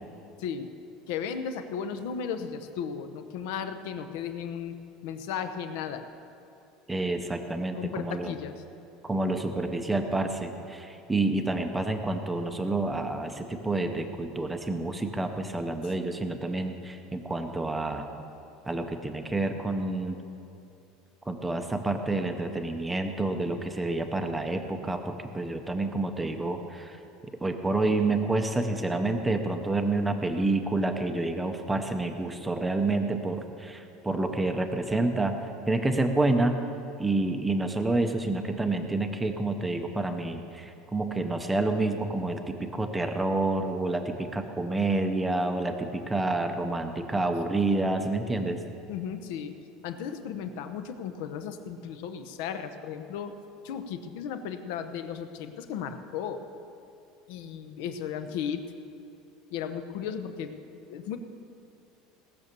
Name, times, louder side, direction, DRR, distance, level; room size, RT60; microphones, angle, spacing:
voice 1, 1.1-4.8 5.0-6.1 7.7-8.6 48.9-49.5 49.8-53.3 53.6-56.4 57.3-58.7 59.5-61.2, left 7 dB, 65° left, 9 dB, 0.9 m, -35 dB
voice 2, 6.9-8.3 9.0-18.1 18.7-20.2 21.3-27.0 27.4-35.4 35.7-36.6 37.0-48.6, right 2 dB, 5° right, 5 dB, 0.7 m, -28 dB
18.0 x 6.9 x 6.8 m, 2.7 s
cardioid pair, 175°, 0 cm